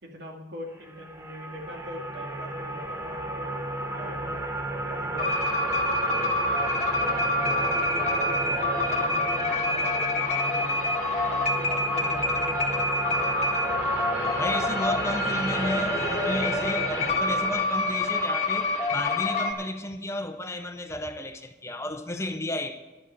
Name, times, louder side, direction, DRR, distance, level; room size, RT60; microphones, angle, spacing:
voice 1, 0.0-3.5 3.9-4.4 4.8-6.2 6.9-8.6 8.9-10.9 11.4-13.2, left 1 dB, 80° right, 2.3 m, -42 dB
sound 1, 0.9-17.6, right 2 dB, 15° right, 1.2 m, -32 dB
sound 2, 5.2-19.5, left 2 dB, 40° left, 1.6 m, -27 dB
voice 2, 14.4-22.8, left 1 dB, 15° left, 0.6 m, -33 dB
11.0 x 7.2 x 8.7 m
head